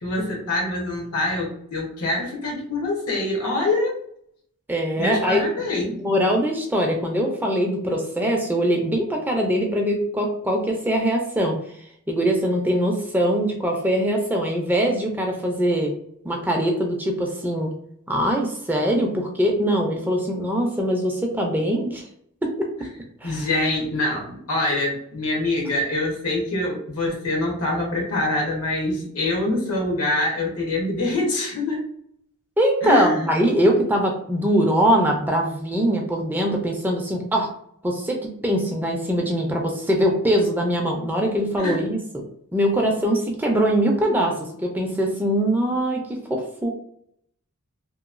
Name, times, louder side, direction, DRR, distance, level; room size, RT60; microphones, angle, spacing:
voice 1, 0.0-4.0 5.0-6.0 23.2-31.9 32.8-33.3 41.5-41.8, left 2 dB, 85° left, -2 dB, 1.0 m, -25 dB
voice 2, 4.7-5.4 6.0-11.6 12.1-15.9 16.2-17.7 18.1-22.0 22.4-22.7 23.2-23.5 32.6-37.5 37.8-42.2 42.5-46.7, equal, 10° right, 1 dB, 0.4 m, -22 dB
2.9 x 2.1 x 2.4 m, 0.68 s
head